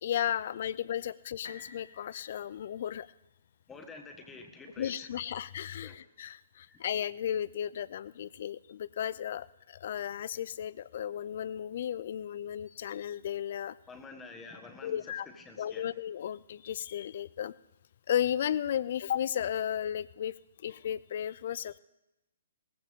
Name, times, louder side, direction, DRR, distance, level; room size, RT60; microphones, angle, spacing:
voice 1, 0.0-3.1 4.8-13.8 14.8-15.3 15.6-17.5 18.1-20.3 20.6-21.8, left 10 dB, 55° left, 20 dB, 0.4 m, -34 dB
sound 1, 1.4-5.4 6.0-6.1, left 4 dB, 70° left, 1.9 m, -54 dB
voice 2, 3.7-5.1 5.8-6.0 6.7-6.8 13.9-16.0, left 3 dB, 15° left, 5 dB, 1.5 m, -48 dB
18.5 x 15.0 x 3.7 m, 0.93 s
figure-of-eight pair, 130°, 0 cm